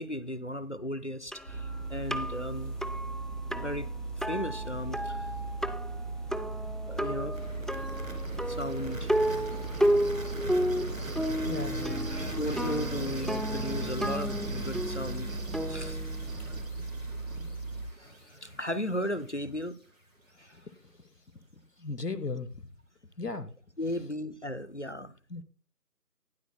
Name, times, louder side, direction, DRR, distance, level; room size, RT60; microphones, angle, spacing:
voice 1, 0.0-2.8 3.5-5.3 6.9-7.6 8.5-9.1 12.1-15.3 15.7-16.0 17.9-19.8 20.4-20.7 23.8-25.1, equal, 50° left, 0.6 m, -36 dB
sound 1, 1.3-16.7, equal, ahead, 0.4 m, -33 dB
sound 2, 1.5-17.9, right 3 dB, 90° right, 6.5 m, -38 dB
sound 3, 7.3-19.3, right 1 dB, 55° right, 2.7 m, -40 dB
voice 2, 11.5-12.1 17.3-17.5 21.8-22.6 23.2-23.5 25.3-25.4, left 3 dB, 75° left, 1.0 m, -36 dB
18.5 x 7.9 x 2.2 m
figure-of-eight pair, 175°, 48 cm